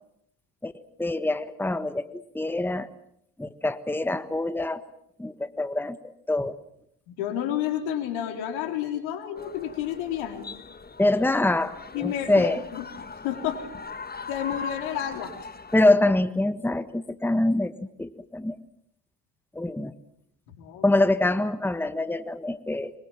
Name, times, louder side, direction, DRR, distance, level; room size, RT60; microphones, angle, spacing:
voice 1, 1.0-2.9 3.4-4.8 5.2-6.6 11.0-12.6 15.7-17.7 18.0-18.6 19.5-19.9 20.8-22.9, left 2 dB, 5° left, 11 dB, 1.5 m, -25 dB
voice 2, 7.1-10.5 11.9-12.8 13.2-13.6 14.3-15.3 20.5-20.9, left 10 dB, 80° left, 5 dB, 4.1 m, -30 dB
sound 1, 9.4-15.8, left 4 dB, 20° left, 1.5 m, -40 dB
24.5 x 23.0 x 7.4 m, 0.72 s
hypercardioid pair, 65°, 47 cm